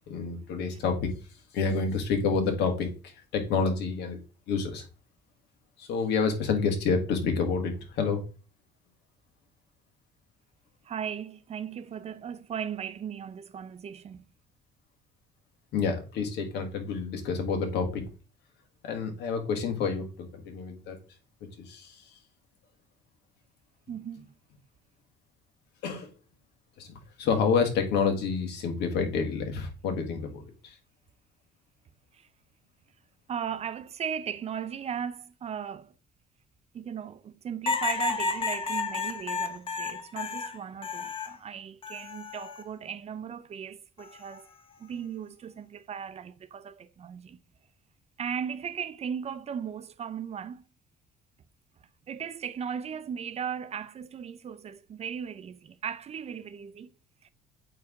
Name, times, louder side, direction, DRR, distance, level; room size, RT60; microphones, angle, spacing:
voice 1, 0.1-1.1 1.5-4.2 4.5-4.8 5.8-8.2 15.7-18.0 18.8-21.0 21.6-22.1 25.8-26.1 26.8-30.8, left 5 dB, 80° left, 1.6 m, -29 dB
voice 2, 10.8-14.2 23.9-24.3 32.1-32.3 33.3-35.9 36.7-44.5 44.8-47.4 48.2-50.6 52.1-56.9 57.2-57.3, right 8 dB, 40° right, 0.5 m, -37 dB
sound 1, 37.7-41.4 41.8-42.6 44.0-44.4, left 4 dB, 30° left, 0.9 m, -32 dB
8.5 x 3.3 x 3.6 m
cardioid pair, 110°, 17 cm